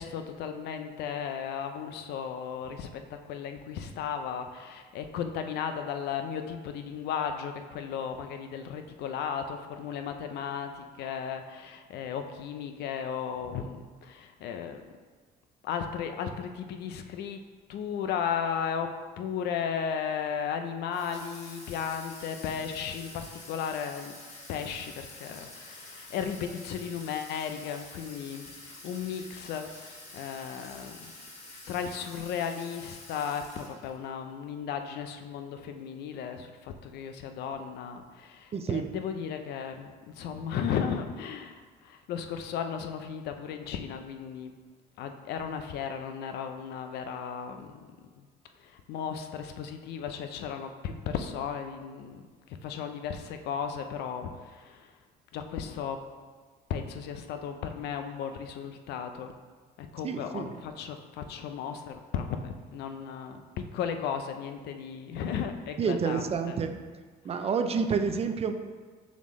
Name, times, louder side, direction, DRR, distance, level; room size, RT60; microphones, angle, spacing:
voice 1, 0.0-14.8 15.6-17.4 17.7-24.1 24.5-31.1 31.7-44.5 45.0-47.9 48.2-48.3 48.6-52.2 52.5-54.9 55.3-56.0 56.7-59.3 59.8-66.6, left 7 dB, 75° left, 7 dB, 0.6 m, -35 dB
Water tap faucet / Sink (filling or washing), 20.9-34.1, left 2 dB, 40° left, 1.4 m, -48 dB
voice 2, 38.5-38.9 60.0-60.6 65.8-66.7 67.2-68.5, right 6 dB, 35° right, 7 dB, 0.5 m, -29 dB
6.9 x 4.2 x 3.2 m, 1.5 s
cardioid pair, 110°, 17 cm